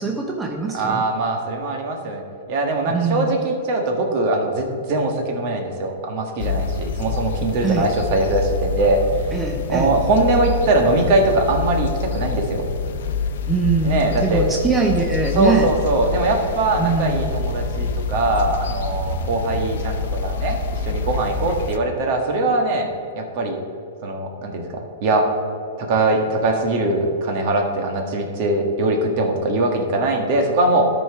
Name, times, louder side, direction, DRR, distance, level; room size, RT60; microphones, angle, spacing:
voice 1, 0.0-1.0 2.9-3.3 7.6-7.9 9.3-9.9 13.5-15.7 16.8-17.3, right 4 dB, 10° right, 0 dB, 0.7 m, -22 dB
voice 2, 0.7-9.0 9.7-12.6 13.8-14.5 15.3-22.9 23.1-23.6 24.0-25.3 25.8-30.9, right 2 dB, 50° right, 3 dB, 1.5 m, -21 dB
sound 1, 6.4-21.8, left 4 dB, 70° left, 0.7 m, -26 dB
12.5 x 4.5 x 4.7 m, 2.5 s
hypercardioid pair, 135°, 0 cm